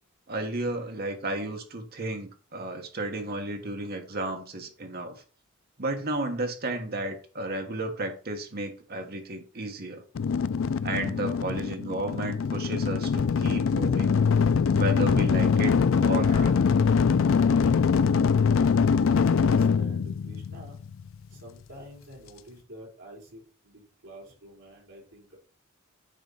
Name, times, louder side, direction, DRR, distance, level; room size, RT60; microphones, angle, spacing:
voice 1, 0.3-5.2 5.8-10.0 10.8-14.1 14.7-16.5, right 2 dB, 50° right, 1.4 m, -33 dB
sound 1, 10.2-21.1, left 6 dB, 70° left, 0.4 m, -23 dB
voice 2, 19.3-20.8 21.3-25.4, right 1 dB, 65° right, 3.6 m, -47 dB
9.1 x 4.4 x 4.0 m
head